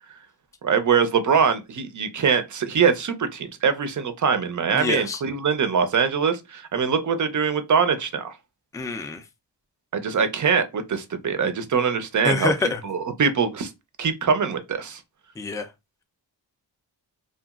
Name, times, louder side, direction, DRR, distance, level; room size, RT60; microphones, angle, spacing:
voice 1, 0.6-8.3 9.9-12.5 12.8-13.7 14.0-15.0, right 6 dB, 45° right, 0.5 m, -23 dB
voice 2, 4.7-5.2 8.7-9.2 12.2-12.8 15.4-15.7, left 3 dB, 10° left, 0.4 m, -26 dB
2.8 x 2.4 x 2.3 m
cardioid pair, 70°, 44 cm